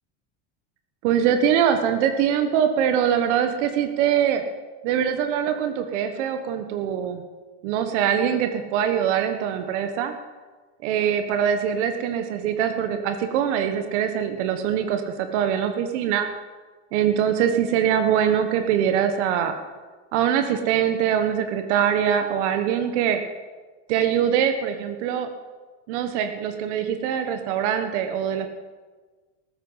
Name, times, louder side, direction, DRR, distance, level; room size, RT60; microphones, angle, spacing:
voice 1, 1.0-4.4 4.8-7.2 7.6-10.1 10.8-16.3 16.9-19.6 20.1-23.2 23.9-25.3 25.9-28.5, right 9 dB, 80° right, 7 dB, 1.4 m, -23 dB
14.5 x 13.0 x 5.6 m, 1.4 s
supercardioid pair, 135°, 34 cm